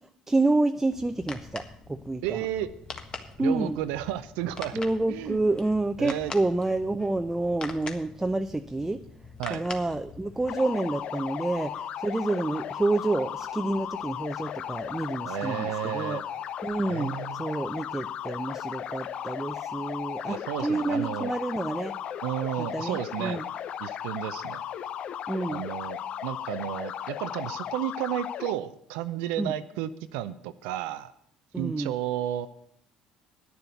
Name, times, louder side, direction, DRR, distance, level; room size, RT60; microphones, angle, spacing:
voice 1, 0.3-1.6 1.9-2.4 3.4-3.8 4.7-9.0 9.5-16.2 16.6-21.9 22.6-23.4 25.3-25.6 29.4-29.5 31.5-31.9, right 2 dB, 15° right, 8 dB, 0.6 m, -28 dB
sound 1, 0.9-10.6, left 4 dB, 35° left, 1.6 m, -43 dB
voice 2, 2.2-2.7 3.4-4.8 5.1-5.4 6.0-6.3 9.4-9.6 15.3-16.2 16.9-17.4 20.3-21.3 22.2-23.4 23.8-24.6 25.5-31.1 31.6-32.5, right 12 dB, 75° right, 12 dB, 0.5 m, -32 dB
sound 2, 10.5-28.5, left 9 dB, 55° left, 0.6 m, -36 dB
9.8 x 7.0 x 9.1 m, 0.72 s
hypercardioid pair, 60°, 2 cm